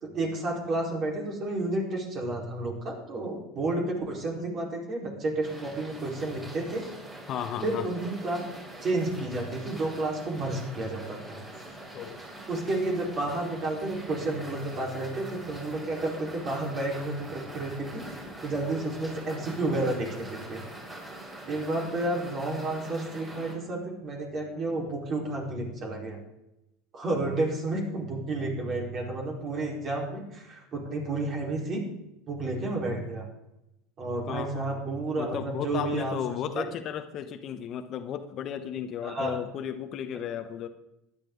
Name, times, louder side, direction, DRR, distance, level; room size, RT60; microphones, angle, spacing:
voice 1, 0.0-6.8 7.6-8.4 8.8-11.4 12.5-20.6 21.5-26.2 26.9-31.8 32.3-33.2 34.0-36.2 36.5-36.6 39.0-39.4, right 2 dB, 40° right, 0 dB, 4.4 m, -31 dB
sound 1, 5.4-23.5, right 1 dB, 20° right, 5.0 m, -44 dB
voice 2, 7.3-7.9 11.9-12.2 34.3-34.8 35.2-40.7, left 9 dB, 45° left, 9 dB, 1.0 m, -34 dB
15.5 x 11.0 x 3.9 m, 0.87 s
supercardioid pair, 105°, 0 cm